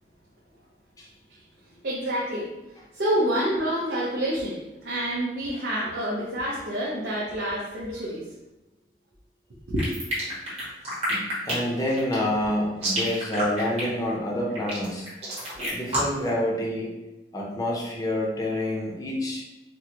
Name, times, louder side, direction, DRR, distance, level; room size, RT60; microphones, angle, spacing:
voice 1, 1.8-2.5 2.9-8.2 9.7-9.8, equal, 70° right, -6 dB, 0.7 m, -27 dB
sound 1, 9.8-16.3, equal, 35° right, 1.4 m, -29 dB
voice 2, 11.1-15.1 15.7-16.9 17.3-19.4, left 1 dB, 20° left, -2 dB, 0.6 m, -28 dB
4.4 x 2.1 x 2.8 m, 1.0 s
head